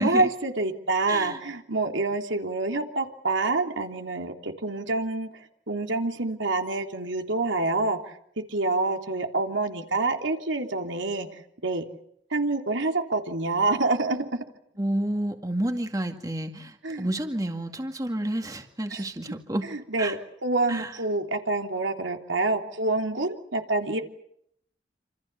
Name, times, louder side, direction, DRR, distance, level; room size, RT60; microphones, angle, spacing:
voice 1, 0.0-5.3 5.7-11.8 12.3-14.4 16.8-17.1 18.9-19.0 19.6-24.0, right 2 dB, 85° right, 4 dB, 3.3 m, -27 dB
voice 2, 1.1-1.4 14.8-19.7 20.0-20.2 20.7-20.9, right 1 dB, 20° right, 5 dB, 2.1 m, -30 dB
28.0 x 27.5 x 6.9 m, 0.71 s
head